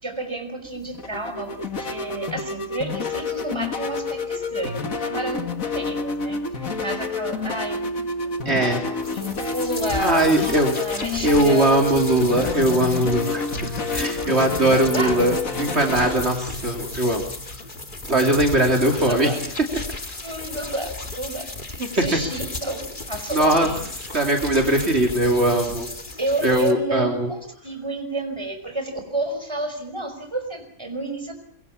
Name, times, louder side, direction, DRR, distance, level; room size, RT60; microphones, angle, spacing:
voice 1, 0.0-12.5 14.7-15.2 19.1-19.4 20.2-23.9 26.2-31.3, right 2 dB, 20° right, 6 dB, 5.4 m, -31 dB
sound 1, 0.6-18.9, left 4 dB, 80° left, 2.4 m, -29 dB
voice 2, 8.4-8.8 10.0-10.7 11.2-17.3 18.1-19.3 21.8-21.9 23.3-23.7 24.0-25.9 26.4-27.3, right 1 dB, 50° right, 2 dB, 3.5 m, -20 dB
sound 2, 9.0-26.7, left 2 dB, 35° left, 2.4 m, -35 dB
26.5 x 23.0 x 7.2 m, 0.63 s
omnidirectional pair, 1.4 m